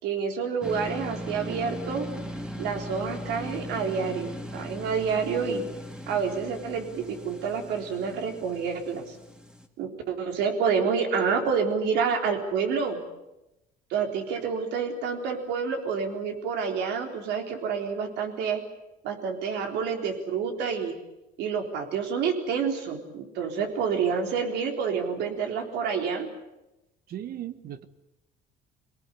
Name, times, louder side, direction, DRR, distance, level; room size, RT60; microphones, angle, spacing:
voice 1, 0.0-2.1 2.6-5.6 6.1-9.2 9.8-13.0 13.9-18.6 19.0-21.0 21.4-26.3, right 6 dB, 85° right, 4 dB, 4.0 m, -28 dB
sound 1, 0.6-9.7, equal, 5° right, 2.3 m, -39 dB
voice 2, 27.1-27.8, right 11 dB, 65° right, 12 dB, 1.5 m, -37 dB
24.0 x 18.5 x 10.0 m, 0.93 s
cardioid pair, 110°, 17 cm